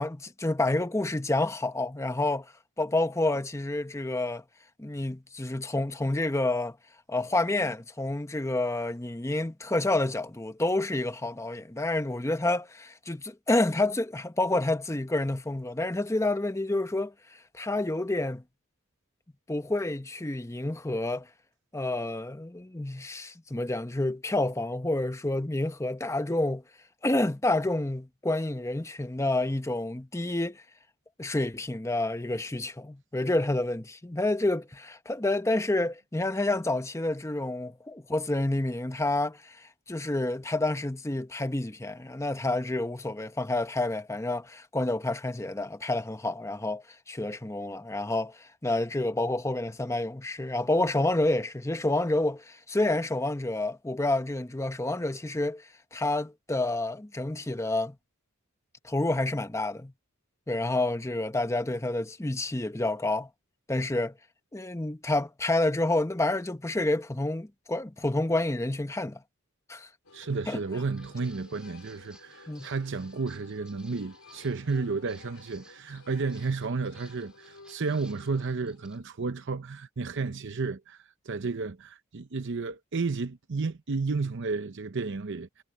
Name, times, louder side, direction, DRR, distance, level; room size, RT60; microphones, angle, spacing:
voice 1, 0.0-2.5 2.8-4.4 4.8-6.8 7.1-18.4 19.5-21.3 21.7-26.6 27.0-30.6 31.2-58.0 58.8-59.9 60.5-63.3 63.7-64.1 64.5-69.2 69.7-69.9 70.5-70.6 72.5-72.7, left 2 dB, 15° left, 0.8 m, -29 dB
sound 1, 70.0-79.2, left 3 dB, 75° left, 4.1 m, -54 dB
voice 2, 70.1-85.5, right 4 dB, 55° right, 0.7 m, -32 dB
Walk footsteps, 70.7-79.0, right 1 dB, 5° right, 4.2 m, -58 dB
head